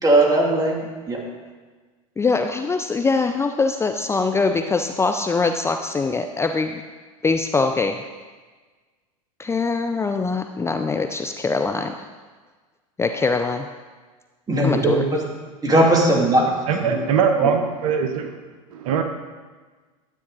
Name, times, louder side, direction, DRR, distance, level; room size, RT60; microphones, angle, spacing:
voice 1, 0.0-1.2 14.5-15.2 15.6-16.5 16.8-17.0, right 1 dB, 20° right, 0 dB, 2.6 m, -18 dB
voice 2, 2.2-6.8 7.2-8.1 9.4-12.1 13.0-13.7 14.6-15.0, left 4 dB, 15° left, 6 dB, 0.5 m, -23 dB
voice 3, 16.7-18.4 18.7-19.0, right 6 dB, 70° right, 6 dB, 1.2 m, -21 dB
12.5 x 8.4 x 4.0 m, 1.4 s
hypercardioid pair, 95°, 19 cm